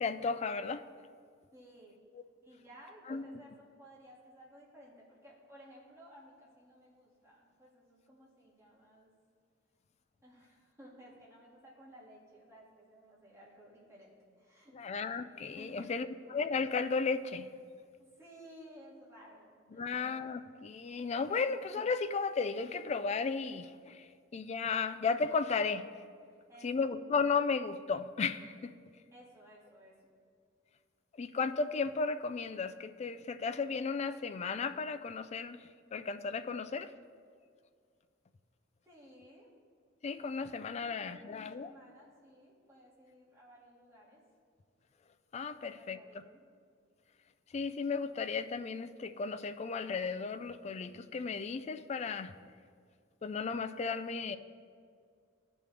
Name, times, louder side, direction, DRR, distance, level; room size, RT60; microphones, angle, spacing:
voice 1, 0.0-0.8 3.1-3.3 14.7-17.5 19.7-25.9 26.6-28.7 31.2-35.6 35.9-36.9 40.0-41.7 45.3-46.0 47.5-52.3 53.2-54.4, left 5 dB, 35° left, 11 dB, 0.3 m, -34 dB
voice 2, 1.5-2.0 2.4-9.1 10.2-14.7 15.6-16.1 18.0-20.0 26.3-26.7 29.1-29.9 38.9-39.5 40.7-44.2 45.5-46.4, equal, 15° right, -6 dB, 2.0 m, -56 dB
15.0 x 5.3 x 3.3 m, 2.2 s
head